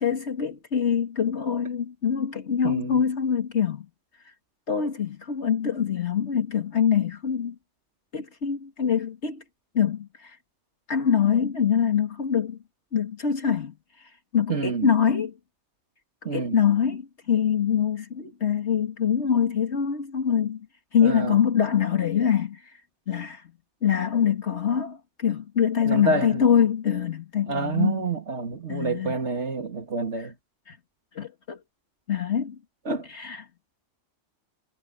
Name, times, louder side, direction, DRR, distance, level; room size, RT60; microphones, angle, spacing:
voice 1, 0.0-3.9 4.7-7.6 8.1-9.4 9.7-10.4 10.9-12.6 12.9-13.7 14.3-15.3 16.3-20.7 20.9-22.6 23.1-23.4 23.8-28.0 28.7-29.2 30.7-30.8 31.2-31.6 32.1-32.6 33.1-33.4, left 8 dB, 65° left, 2.1 m, -24 dB
voice 2, 2.6-3.0 14.5-14.9 16.2-16.6 21.0-21.4 25.8-26.4 27.5-30.3 32.9-33.1, right 4 dB, 70° right, 2.6 m, -28 dB
omnidirectional pair, 1.2 m